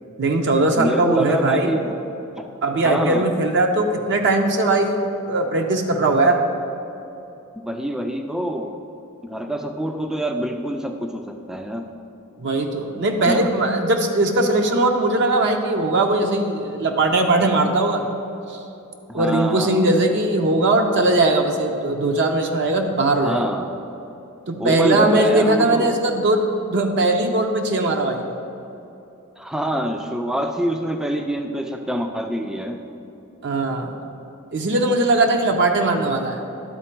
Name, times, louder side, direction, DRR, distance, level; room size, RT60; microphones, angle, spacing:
voice 1, 0.2-1.7 2.6-6.4 12.4-18.0 18.5-18.6 19.1-23.4 24.5-28.3 33.4-33.9 34.5-36.4, right 2 dB, 55° right, 4 dB, 0.5 m, -20 dB
voice 2, 0.8-2.0 2.4-2.5 2.8-3.3 7.6-8.7 9.2-11.9 13.2-13.5 19.1-19.9 23.2-23.7 24.6-26.0 29.4-32.8, equal, ahead, 5 dB, 0.3 m, -25 dB
11.5 x 4.2 x 4.5 m, 2.9 s
head